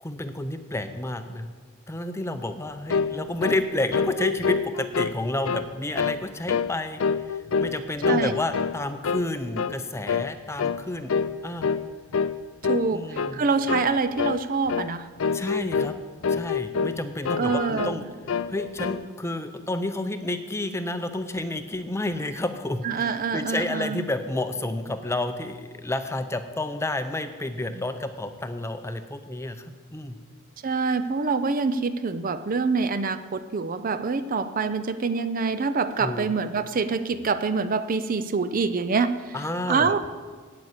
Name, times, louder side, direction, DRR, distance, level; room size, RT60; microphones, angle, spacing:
voice 1, 0.0-1.5 1.9-7.0 7.3-11.2 11.4-11.7 12.9-13.4 15.3-16.0 16.3-18.0 18.5-30.2 36.0-36.3 39.3-39.9, left 2 dB, 10° left, 8 dB, 0.6 m, -30 dB
sound 1, 2.9-3.1 3.4-3.6 3.9-5.1 5.4-5.7 6.0-6.2 6.5-6.7 7.0-7.8 8.0-8.8 9.0-9.3 9.6-9.8 10.1-10.3 10.6-10.8 11.1-11.3 11.6-11.8 12.1-12.3 12.6-12.9 13.2-13.3 13.7-13.9 14.2-14.4 14.7-14.9 15.2-15.9 16.2-17.0 17.2-18.0 18.3-19.0, left 5 dB, 65° left, 0.4 m, -26 dB
voice 2, 8.1-8.4 12.7-15.1 17.4-18.1 22.8-24.0 30.6-39.3 39.7-40.0, right 4 dB, 40° right, 12 dB, 0.5 m, -25 dB
9.0 x 8.6 x 8.1 m, 1.5 s
head